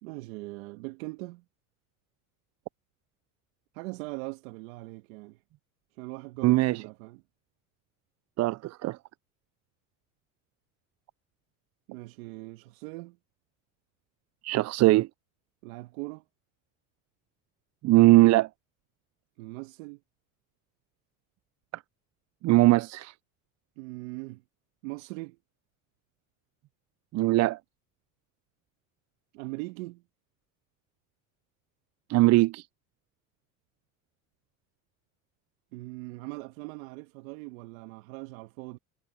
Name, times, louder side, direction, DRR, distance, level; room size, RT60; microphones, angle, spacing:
voice 1, 0.0-1.4 3.7-5.4 5.9-7.2 11.9-13.2 15.6-16.2 19.4-20.0 23.8-24.4 24.8-25.4 29.3-30.0 35.7-38.8, right 24 dB, 75° right, 1.7 m, -40 dB
voice 2, 6.4-6.8 8.4-9.0 14.4-15.1 17.8-18.5 21.7-21.8 22.4-23.1 27.1-27.6 32.1-32.7, right 19 dB, 40° right, 0.4 m, -21 dB
hypercardioid pair, 80°, 41 cm